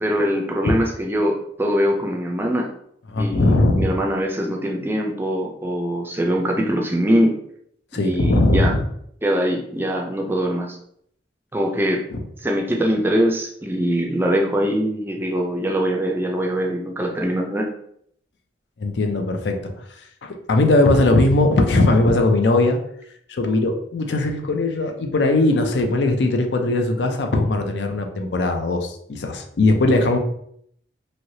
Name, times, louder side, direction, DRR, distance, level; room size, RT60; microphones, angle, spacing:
voice 1, 0.0-2.7 3.2-7.3 8.0-8.7 9.2-10.8 11.5-12.0 12.4-17.6, equal, 10° right, 0 dB, 0.4 m, -22 dB
voice 2, 3.1-3.9 7.9-8.8 12.1-12.2 18.8-22.8 23.3-30.2, left 2 dB, 75° left, 5 dB, 0.5 m, -19 dB
3.2 x 2.8 x 2.7 m, 0.69 s
head